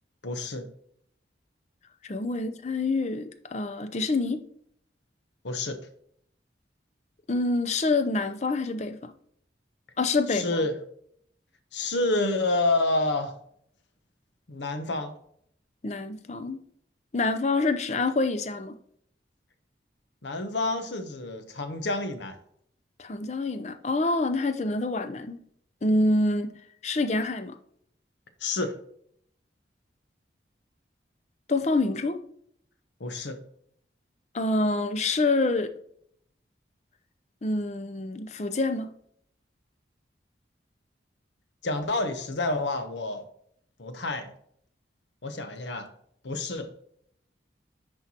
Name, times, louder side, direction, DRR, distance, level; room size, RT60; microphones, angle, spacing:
voice 1, 0.2-0.7 5.4-5.8 10.3-10.8 11.7-13.4 14.5-15.1 20.2-22.4 28.4-28.7 33.0-33.4 41.6-43.2 43.8-44.3 45.2-45.9 46.2-46.7, left 2 dB, 80° left, 0.9 m, -28 dB
voice 2, 2.0-4.4 7.3-9.1 10.0-10.6 15.8-16.6 17.1-18.8 23.0-25.4 25.8-26.5 26.8-27.6 31.5-32.2 34.3-35.7 37.4-38.9, left 2 dB, 40° left, 0.5 m, -26 dB
9.8 x 4.5 x 2.9 m
head